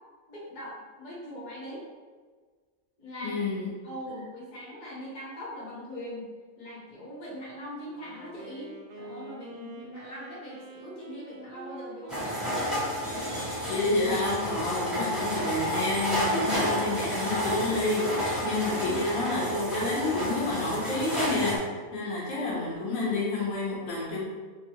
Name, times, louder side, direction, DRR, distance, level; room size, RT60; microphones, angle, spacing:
voice 1, 0.3-1.9 3.0-3.4 3.8-6.3 6.6-12.2 18.6-19.0, equal, 40° left, -7 dB, 0.8 m, -41 dB
voice 2, 3.2-3.7 4.1-4.2 13.7-24.2, left 2 dB, 80° left, -5 dB, 1.2 m, -29 dB
Wind instrument woodwind instrument, 7.8-16.5, right 1 dB, 60° right, 0.6 m, -46 dB
sound 1, 12.1-21.6, equal, ahead, 0.8 m, -30 dB
2.8 x 2.6 x 2.8 m, 1.5 s
omnidirectional pair, 1.5 m